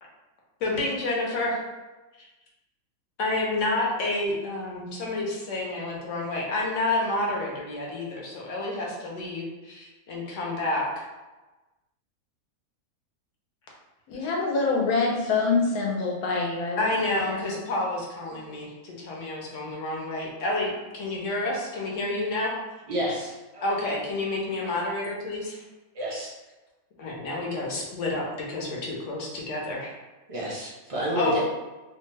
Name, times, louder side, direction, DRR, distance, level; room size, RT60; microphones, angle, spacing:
voice 1, 0.6-1.6 3.2-11.1 16.8-22.5 23.0-23.1 23.6-25.6 27.0-29.9 31.1-31.4, left 2 dB, 65° left, -3 dB, 1.0 m, -29 dB
voice 2, 14.1-17.4, left 4 dB, 85° left, -1 dB, 1.2 m, -26 dB
voice 3, 22.9-23.6 24.6-24.7 25.9-26.3 30.3-31.4, equal, 35° right, -5 dB, 0.5 m, -30 dB
2.8 x 2.2 x 3.2 m, 1.1 s
omnidirectional pair, 1.5 m